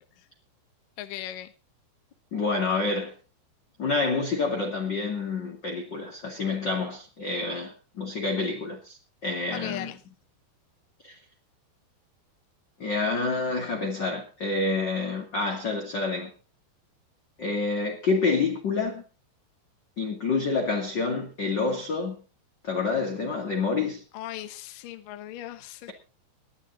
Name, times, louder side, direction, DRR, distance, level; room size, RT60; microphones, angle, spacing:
voice 1, 1.0-1.5 9.5-10.0 24.1-25.9, left 13 dB, 70° left, 2.2 m, -38 dB
voice 2, 2.3-3.1 3.8-9.0 9.2-9.9 11.0-11.1 12.8-16.3 17.4-19.0 20.0-22.2 22.6-24.0, left 4 dB, 35° left, 1.9 m, -28 dB
20.5 x 11.5 x 4.0 m
omnidirectional pair, 5.1 m